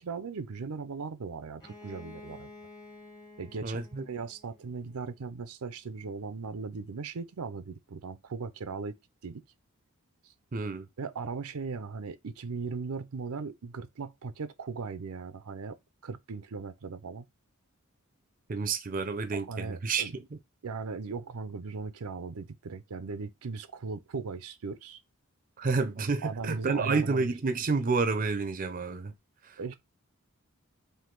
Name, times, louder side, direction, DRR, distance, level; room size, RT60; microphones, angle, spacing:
voice 1, 0.0-2.5 3.4-3.8 4.1-9.0 9.2-9.4 11.0-15.8 16.0-17.3 19.3-20.1 20.6-25.0 26.2-27.3 29.6-29.7, right 4 dB, 85° right, 0.6 m, -38 dB
Bowed string instrument, 1.6-5.3, left 2 dB, 15° left, 1.0 m, -51 dB
voice 2, 3.6-4.1 10.5-10.9 18.5-20.4 25.6-29.1 29.4-29.6, right 4 dB, 40° right, 0.5 m, -30 dB
4.6 x 2.7 x 3.8 m
head